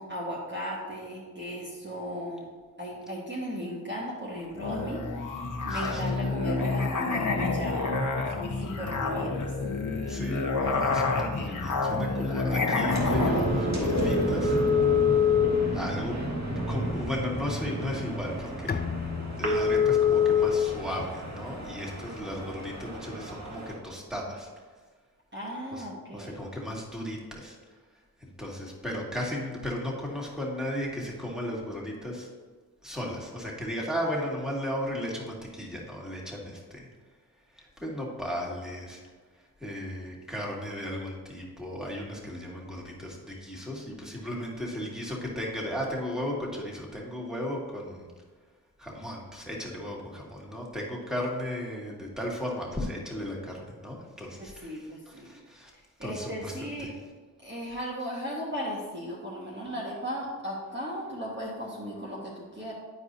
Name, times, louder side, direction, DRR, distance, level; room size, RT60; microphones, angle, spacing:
voice 1, 0.0-2.5 2.8-7.9 8.3-9.5 16.1-16.3 25.3-26.4 54.3-55.3 56.0-56.9 57.4-62.7, equal, 30° right, -5 dB, 1.5 m, -36 dB
Musical instrument, 4.5-14.7, left 3 dB, 55° left, 1.2 m, -29 dB
voice 2, 5.7-6.1 10.1-14.6 15.7-16.2 16.7-18.8 19.4-24.5 25.7-25.9 26.1-27.6 28.2-32.3 32.8-36.9 37.5-39.0 39.6-48.1 48.8-55.7 56.0-56.9, left 1 dB, ahead, -3 dB, 2.1 m, -35 dB
sound 1, 12.9-23.7, left 4 dB, 45° right, 2.1 m, -27 dB
Bowed string instrument, 18.7-22.2, left 7 dB, 25° left, 0.4 m, -38 dB
10.5 x 4.8 x 2.7 m, 1.4 s
cardioid pair, 40°, 37 cm